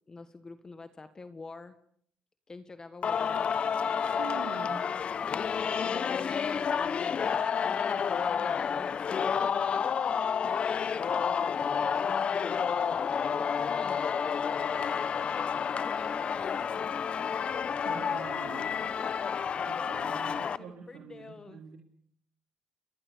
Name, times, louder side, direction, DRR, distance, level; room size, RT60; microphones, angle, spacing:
voice 1, 0.1-1.8 2.5-3.6 5.8-10.0 10.6-12.7 13.4-14.0 15.7-17.5 19.8-21.8, left 3 dB, 25° left, 10 dB, 1.6 m, -47 dB
Singing, 3.0-20.6, left 7 dB, 45° left, 1.0 m, -30 dB
voice 2, 4.0-4.8 14.5-14.7 17.8-18.7 19.6-21.8, right 7 dB, 70° right, 1 dB, 3.4 m, -45 dB
29.0 x 21.5 x 6.9 m, 0.63 s
cardioid pair, 95°, 3 cm